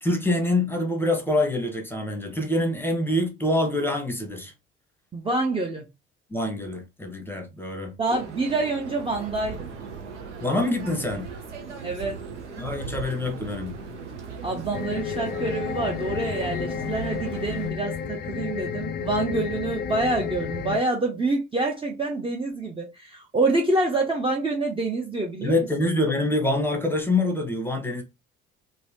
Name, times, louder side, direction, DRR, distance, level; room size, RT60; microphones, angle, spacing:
voice 1, 0.0-4.5 6.3-7.9 10.4-11.3 12.6-13.7 25.4-28.0, left 1 dB, 5° left, 1.0 m, -25 dB
voice 2, 5.1-5.9 8.0-9.7 11.8-12.2 14.4-25.5, right 2 dB, 15° right, 0.7 m, -27 dB
sound 1, 8.1-17.7, right 5 dB, 85° right, 0.6 m, -38 dB
sound 2, 14.7-20.8, left 7 dB, 30° left, 0.5 m, -31 dB
3.1 x 2.7 x 2.7 m
figure-of-eight pair, 50°, 35 cm